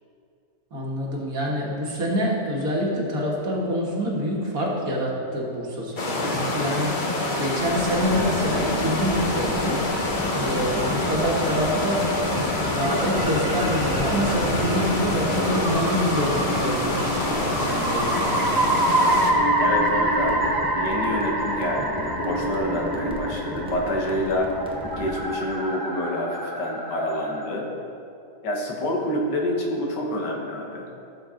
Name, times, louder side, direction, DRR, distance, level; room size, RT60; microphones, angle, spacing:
voice 1, 0.7-9.8 10.4-18.5, equal, 60° right, -2 dB, 2.0 m, -26 dB
sound 1, 6.0-19.3, left 2 dB, 35° left, 0.9 m, -26 dB
sound 2, 7.6-25.2, equal, 5° right, 0.9 m, -33 dB
sound 3, 10.6-27.4, right 1 dB, 25° right, 0.5 m, -28 dB
voice 2, 19.6-24.5 25.0-27.7 28.4-30.9, left 1 dB, 85° left, -1 dB, 2.0 m, -27 dB
14.0 x 6.9 x 3.8 m, 2.6 s
omnidirectional pair, 1.8 m